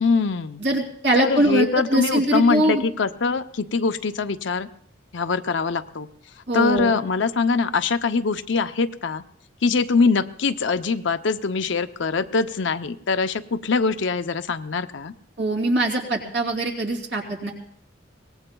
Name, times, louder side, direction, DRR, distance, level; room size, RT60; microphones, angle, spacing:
voice 1, 0.0-0.6 1.1-4.7 5.1-6.1 6.5-9.2 9.6-15.1, left 4 dB, 65° left, 10 dB, 0.6 m, -23 dB
voice 2, 0.6-2.8 6.5-6.9 15.4-17.5, right 1 dB, 65° right, 1 dB, 3.0 m, -22 dB
23.5 x 19.0 x 2.3 m, 0.65 s
head